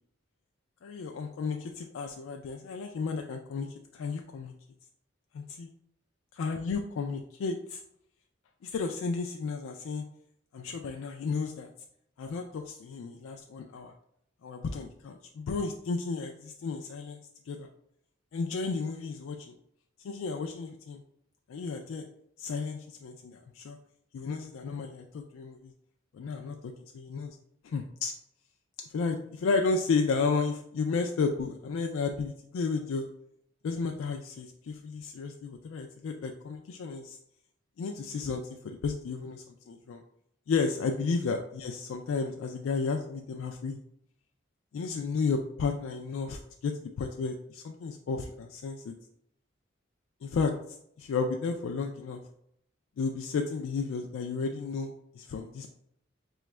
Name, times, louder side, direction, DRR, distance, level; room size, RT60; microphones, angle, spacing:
voice 1, 0.8-3.7 3.9-4.5 5.3-5.7 6.4-7.8 8.6-10.0 10.5-11.7 12.2-13.9 14.4-17.2 17.5-17.7 18.3-19.5 20.0-21.0 21.5-22.1 22.4-23.8 24.1-25.7 26.1-27.4 27.6-28.1 28.9-33.1 33.6-37.2 37.8-40.0 40.5-43.8 44.7-48.9 50.2-52.2 53.0-55.7, left 4 dB, 85° left, 4 dB, 0.3 m, -33 dB
4.9 x 2.3 x 3.1 m, 0.73 s
head